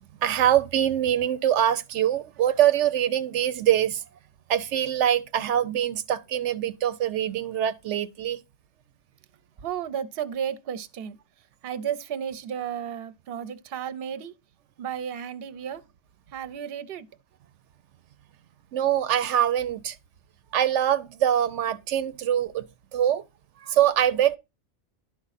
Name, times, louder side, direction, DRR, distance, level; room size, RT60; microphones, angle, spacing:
voice 1, 0.2-4.0 4.5-8.4 18.7-20.0 20.5-22.7 22.9-23.2 23.6-24.4, right 10 dB, 90° right, 0.9 m, -24 dB
voice 2, 9.6-11.2 11.6-14.3 14.8-15.8 16.3-17.1, right 8 dB, 60° right, 0.9 m, -33 dB
11.5 x 4.8 x 4.1 m
omnidirectional pair, 1.2 m